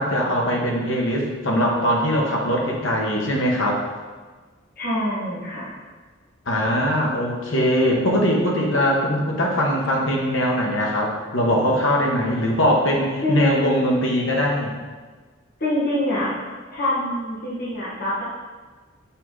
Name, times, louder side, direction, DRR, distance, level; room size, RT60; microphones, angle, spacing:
voice 1, 0.0-3.8 6.5-14.7, equal, 80° left, -1 dB, 1.2 m, -21 dB
voice 2, 4.8-5.7 13.2-13.8 15.6-16.3 16.7-18.2, left 1 dB, 50° left, -9 dB, 1.4 m, -25 dB
5.8 x 4.7 x 3.8 m, 1.4 s
head